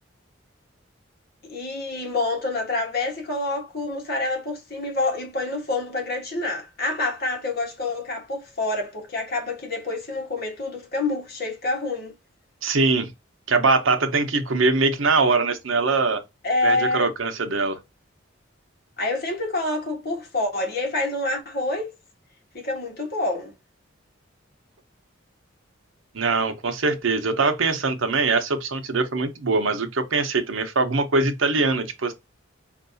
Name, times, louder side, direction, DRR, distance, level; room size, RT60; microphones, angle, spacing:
voice 1, 1.4-12.1 16.4-17.1 19.0-21.9 22.5-23.5, left 2 dB, 55° left, 1.5 m, -27 dB
voice 2, 12.6-13.1 13.5-16.2 16.6-17.8 26.1-32.1, right 3 dB, 90° right, 0.8 m, -22 dB
4.5 x 2.6 x 2.6 m
head